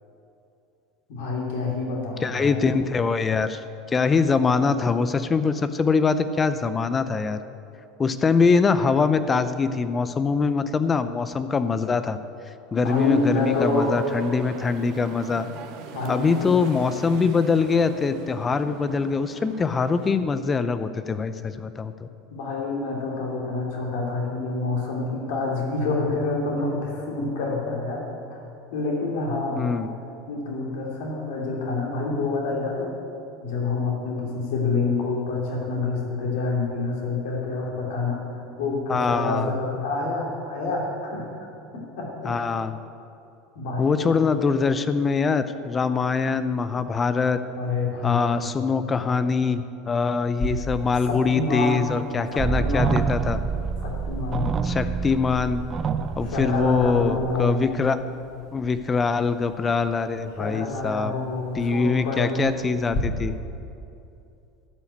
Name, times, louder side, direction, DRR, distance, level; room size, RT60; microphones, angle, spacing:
voice 1, 1.1-2.6 12.7-13.9 15.9-16.5 22.3-28.0 28.3-28.4 28.7-29.7 30.3-32.9 33.4-38.2 38.6-41.2 41.7-42.3 43.5-44.2 47.6-48.5 51.1-51.8 52.3-53.0 53.8-54.5 56.2-57.6 60.3-62.5, left 3 dB, 70° left, -2 dB, 2.8 m, -27 dB
voice 2, 2.2-3.6 3.9-7.4 8.0-12.2 12.7-15.5 16.1-22.1 29.6-29.9 38.9-39.5 42.2-42.7 43.8-47.4 48.0-53.4 54.6-55.6 56.2-58.0 58.5-61.1 61.5-63.4, left 5 dB, 25° left, 12 dB, 0.6 m, -23 dB
sound 1, 12.8-20.2, right 5 dB, 65° right, 1.0 m, -42 dB
sound 2, 50.3-63.0, left 1 dB, 45° left, 3.1 m, -40 dB
sound 3, 52.4-57.4, right 6 dB, 35° right, 0.6 m, -27 dB
12.0 x 5.7 x 8.2 m, 2.7 s
hypercardioid pair, 85°, 0 cm